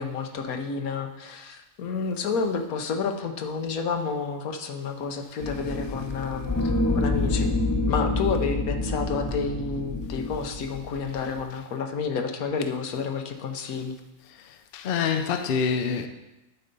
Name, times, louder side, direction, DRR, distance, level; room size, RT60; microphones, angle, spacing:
voice 1, 0.0-7.5 7.9-13.9, left 5 dB, 85° left, 1.3 m, -30 dB
sound 1, 5.4-11.4, left 2 dB, 15° left, 0.6 m, -27 dB
voice 2, 14.7-16.1, left 6 dB, 55° left, 0.6 m, -25 dB
11.0 x 4.1 x 5.2 m
omnidirectional pair, 1.5 m